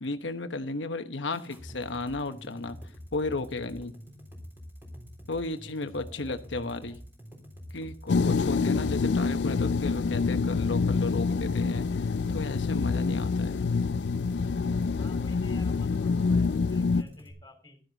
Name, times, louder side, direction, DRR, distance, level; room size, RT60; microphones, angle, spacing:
voice 1, 0.0-2.8 3.1-3.9 5.3-7.0 7.7-13.6, left 2 dB, 90° left, 1.1 m, -34 dB
sound 1, 1.3-17.3, equal, 10° right, 3.7 m, -46 dB
voice 2, 6.0-7.0 15.0-17.8, left 2 dB, 20° left, 3.2 m, -53 dB
sound 2, 8.1-17.0, left 4 dB, 65° left, 0.4 m, -26 dB
12.0 x 11.0 x 4.0 m
head